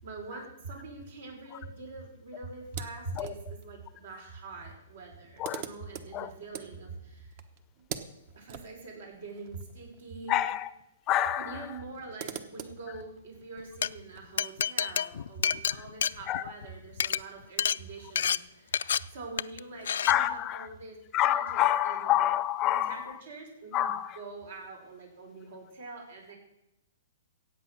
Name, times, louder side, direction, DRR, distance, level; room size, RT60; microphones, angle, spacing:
voice 1, 0.0-7.3 7.8-7.9 8.3-10.4 11.4-21.0 21.2-22.1 22.6-26.3, right 3 dB, 70° right, 5.6 m, -44 dB
sound 1, 2.6-3.7 4.7-4.8 5.0-10.5 10.8-10.9 11.7-14.2, right 8 dB, 45° right, 1.1 m, -45 dB
voice 2, 10.3-10.7 11.1-11.8 15.7-15.8 16.3-16.4 20.1-20.7 21.1-23.2 23.7-24.2, left 13 dB, 25° left, 0.6 m, -28 dB
Glass, 13.6-13.9 14.4-16.7 16.9-17.2 17.6-17.8 18.2-18.4 18.7-19.0 19.4-19.6 19.9-20.1, left 8 dB, 75° left, 0.4 m, -28 dB
15.5 x 8.4 x 6.2 m
hypercardioid pair, 145°, 0 cm